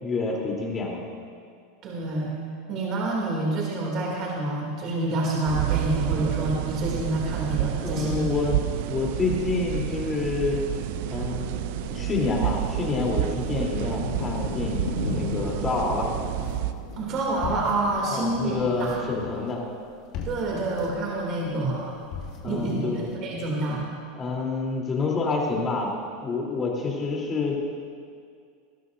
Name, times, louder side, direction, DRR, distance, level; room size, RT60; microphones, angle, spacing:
voice 1, 0.0-1.0 7.8-8.6 8.9-10.6 11.1-11.5 11.9-16.1 18.1-19.6 22.4-23.1 24.2-25.9 26.2-27.6, left 3 dB, 25° left, -2 dB, 3.5 m, -27 dB
voice 2, 1.8-8.3 17.0-19.0 20.2-21.9 22.4-23.9, right 2 dB, 45° right, -3 dB, 2.8 m, -28 dB
sound 1, 5.5-16.7, right 13 dB, 65° right, 0.5 m, -30 dB
sound 2, 8.6-19.3, left 2 dB, 90° left, 1.5 m, -38 dB
sound 3, 16.1-23.1, left 4 dB, 55° left, 2.3 m, -41 dB
20.5 x 12.5 x 2.7 m, 2.2 s
hypercardioid pair, 95°, 0 cm